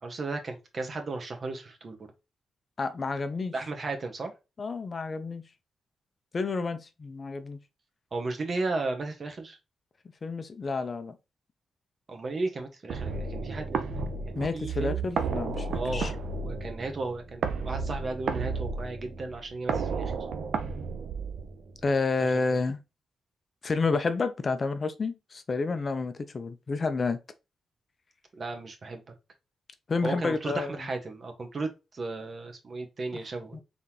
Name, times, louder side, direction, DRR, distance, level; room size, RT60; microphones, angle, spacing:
voice 1, 0.0-2.1 3.5-4.3 8.1-9.6 12.1-13.8 14.1-15.1 15.7-20.1 22.2-22.4 28.3-29.0 30.0-33.6, right 3 dB, 50° right, 1.4 m, -35 dB
voice 2, 2.8-3.5 4.6-5.4 6.3-7.6 10.2-11.2 14.4-16.1 21.8-22.8 23.6-27.2 29.9-30.8 33.1-33.2 33.5-33.6, left 4 dB, 50° left, 0.8 m, -30 dB
sound 1, 12.9-21.9, right 4 dB, 75° right, 0.7 m, -32 dB
4.0 x 3.6 x 2.9 m
cardioid pair, 55°, 0 cm